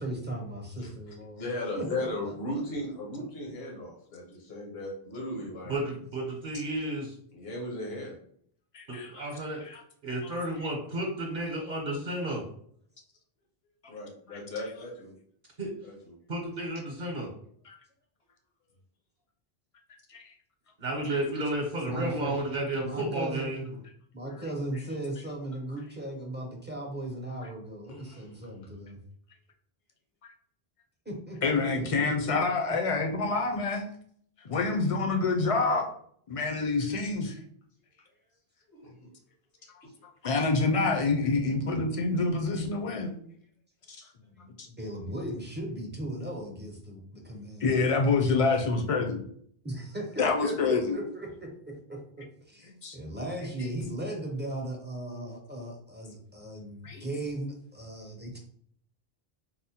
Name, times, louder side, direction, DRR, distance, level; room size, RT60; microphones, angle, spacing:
voice 1, 0.0-1.4 1.8-2.6 21.9-22.4 22.8-23.5 24.1-29.0 31.1-32.4 44.8-47.8 49.6-52.0 52.5-58.4, right 1 dB, 15° right, 0 dB, 0.4 m, -37 dB
voice 2, 1.4-5.7 7.3-8.1 13.9-15.1 15.8-16.1 27.8-28.3 33.3-33.4 38.7-38.9 42.9-43.0 56.9-57.1, left 1 dB, 75° left, -2 dB, 1.1 m, -37 dB
voice 3, 5.7-7.1 8.9-9.6 10.0-12.4 15.6-15.7 16.3-17.3 20.8-23.6, right 1 dB, 55° right, 0 dB, 0.9 m, -32 dB
voice 4, 8.7-9.3 9.6-9.8 14.3-14.4 17.7-17.8 20.1-20.2 31.4-33.9 34.4-35.9 36.3-37.3 40.2-43.1 43.9-44.0 44.4-44.5 47.6-49.2 50.2-51.0 52.8-53.0 56.8-57.0, left 3 dB, 45° left, 2 dB, 0.5 m, -27 dB
4.1 x 2.1 x 2.8 m, 0.63 s
omnidirectional pair, 1.0 m